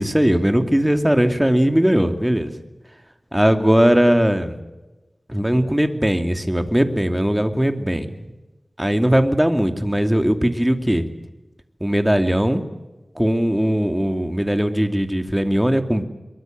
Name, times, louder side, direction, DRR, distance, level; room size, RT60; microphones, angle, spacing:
voice 1, 0.0-2.5 3.3-4.6 5.3-8.1 8.8-11.1 11.8-12.6 13.2-16.0, equal, 10° right, 7 dB, 2.7 m, -19 dB
23.0 x 23.0 x 7.7 m, 1.1 s
wide cardioid pair, 55°, 0 cm